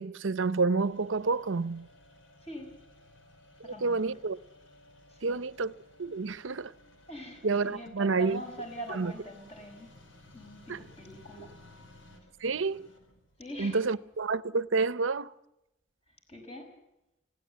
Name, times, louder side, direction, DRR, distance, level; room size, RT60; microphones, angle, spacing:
voice 1, 0.0-1.9 3.6-4.4 5.2-5.7 6.0-6.7 7.4-8.4 8.9-9.1 10.7-10.8 12.4-12.9 13.6-15.3, right 4 dB, 80° right, 0.7 m, -29 dB
sound 1, 0.8-14.3, left 1 dB, 80° left, 4.8 m, -57 dB
voice 2, 2.4-2.8 3.6-4.0 5.1-5.4 7.1-9.9 10.3-11.5 13.4-13.8 16.3-16.7, equal, 30° left, 5.9 m, -43 dB
21.0 x 16.5 x 8.3 m
head